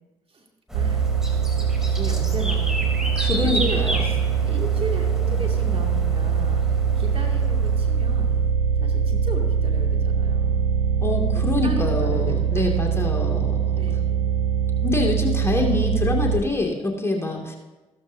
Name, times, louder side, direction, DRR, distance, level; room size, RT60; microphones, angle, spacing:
sound 1, 0.7-8.3, equal, 5° right, 3.2 m, -32 dB
voice 1, 0.7-1.1 1.9-6.6 7.0-8.5 8.8-10.6 11.3-14.3, right 1 dB, 40° right, 1 dB, 2.5 m, -36 dB
sound 2, 0.7-16.4, right 6 dB, 75° right, 0.7 m, -22 dB
voice 2, 3.2-3.9 11.0-13.8 14.8-17.6, left 3 dB, 15° left, 0 dB, 2.3 m, -25 dB
14.5 x 12.5 x 2.7 m, 1.1 s
hypercardioid pair, 45°, 15 cm